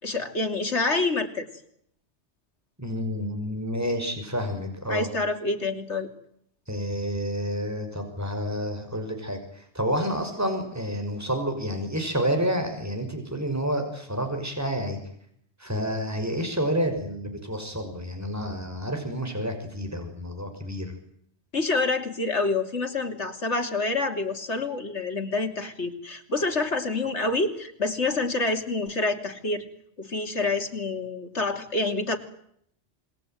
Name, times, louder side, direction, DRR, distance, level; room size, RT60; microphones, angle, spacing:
voice 1, 0.0-1.5 4.9-6.1 21.5-29.6 30.0-32.2, left 3 dB, 85° left, 6 dB, 3.4 m, -27 dB
voice 2, 2.8-5.1 6.7-15.0 15.6-20.9, equal, 15° right, 5 dB, 6.0 m, -29 dB
27.5 x 22.0 x 9.3 m, 0.69 s
omnidirectional pair, 1.2 m